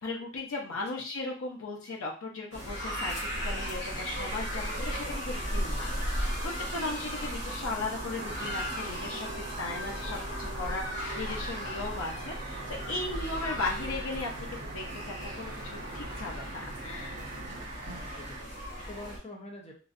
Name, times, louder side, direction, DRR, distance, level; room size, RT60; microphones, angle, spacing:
voice 1, 0.0-14.3 14.6-17.2, left 3 dB, 90° left, -1 dB, 0.6 m, -37 dB
sound 1, 2.5-19.2, equal, 60° left, 1.0 m, -36 dB
sound 2, 3.9-18.4, right 2 dB, 30° right, 0.4 m, -44 dB
sound 3, 7.8-17.7, right 3 dB, 80° right, 0.4 m, -46 dB
voice 2, 9.7-10.4 11.0-11.8 18.1-19.7, left 1 dB, 30° left, 0 dB, 0.7 m, -47 dB
3.0 x 2.6 x 2.5 m, 0.38 s
head